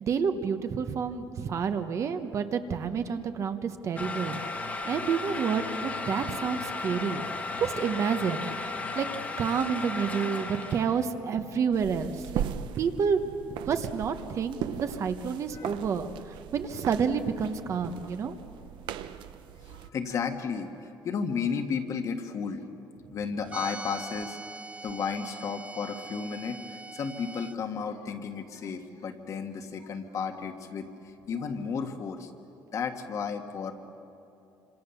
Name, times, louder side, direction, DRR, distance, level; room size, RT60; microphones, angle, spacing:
voice 1, 0.0-7.2 7.6-9.1 9.4-12.4 12.8-13.2 13.5-18.3, right 6 dB, 35° right, 8 dB, 1.1 m, -29 dB
sound 1, 4.0-11.0, left 3 dB, 20° left, 1.6 m, -35 dB
sound 2, 11.7-19.9, right 10 dB, 70° right, 0.9 m, -38 dB
voice 2, 19.6-22.6 23.1-24.4 24.8-30.9 31.3-32.3 32.7-33.7, left 6 dB, 40° left, 6 dB, 1.6 m, -33 dB
sound 3, 23.5-27.6, right 3 dB, 15° right, 0.5 m, -42 dB
28.0 x 26.5 x 7.0 m, 2.8 s
cardioid pair, 170°, 8 cm